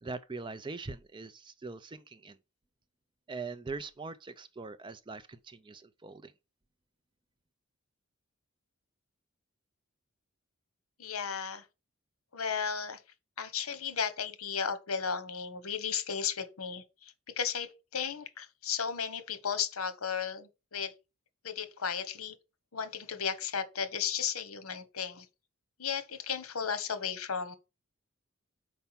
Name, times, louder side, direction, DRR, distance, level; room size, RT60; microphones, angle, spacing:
voice 1, 0.0-2.4 3.3-6.3, right 3 dB, 20° right, 0.4 m, -42 dB
voice 2, 11.0-11.6 12.3-13.0 13.4-20.9 21.4-22.4 22.7-25.3 25.8-27.6, left 7 dB, 80° left, 1.1 m, -34 dB
5.6 x 4.7 x 5.7 m
head